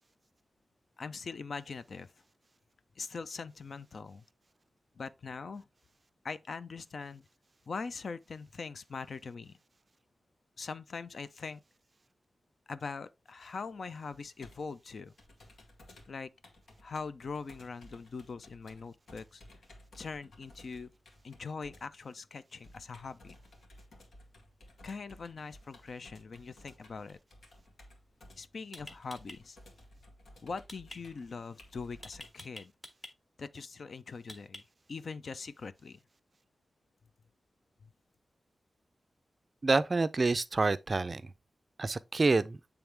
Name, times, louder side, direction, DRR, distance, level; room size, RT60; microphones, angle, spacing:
voice 1, 1.0-2.1 3.0-4.2 5.0-5.7 6.2-7.3 7.7-9.6 10.6-11.6 12.7-15.1 16.1-16.3 16.8-19.4 19.9-20.9 21.2-23.4 24.8-27.2 28.4-29.6 30.4-32.7 33.4-34.6 34.9-36.0 37.8-37.9, left 4 dB, 60° left, 0.4 m, -42 dB
Computer keyboard, 13.5-32.3, left 1 dB, 85° left, 1.8 m, -57 dB
sound 1, 28.1-28.3 28.7-29.4 30.7-31.0 32.0-33.1 34.3-34.9, left 1 dB, 15° left, 1.4 m, -47 dB
voice 2, 39.6-41.3 41.8-42.6, right 3 dB, 30° right, 0.4 m, -28 dB
8.7 x 3.5 x 3.4 m
wide cardioid pair, 180°, 0 cm